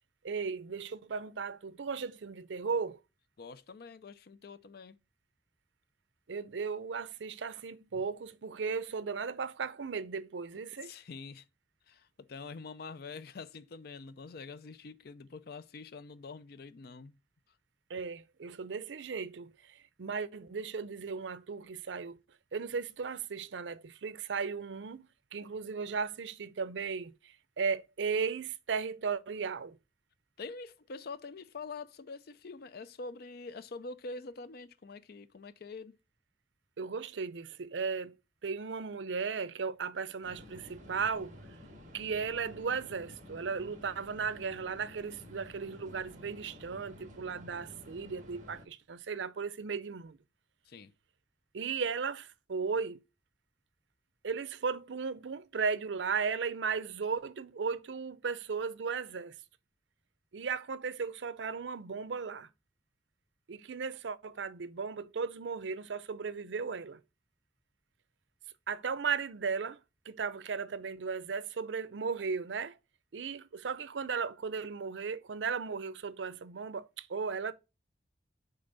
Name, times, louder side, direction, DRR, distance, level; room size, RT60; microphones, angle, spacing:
voice 1, 0.2-3.0 6.3-10.9 17.9-22.2 22.5-25.1 25.3-29.8 36.8-38.2 38.4-41.4 41.9-50.2 51.5-53.0 54.2-59.3 60.3-62.5 63.5-67.0 68.7-69.8 70.1-72.8 73.1-77.5, right 5 dB, 85° right, 0.5 m, -36 dB
voice 2, 3.4-5.0 10.8-11.4 11.9-17.2 30.4-36.0 50.7-50.9, left 4 dB, 60° left, 0.5 m, -45 dB
sound 1, 40.2-48.6, left 1 dB, 45° right, 1.7 m, -52 dB
6.8 x 4.0 x 3.9 m
head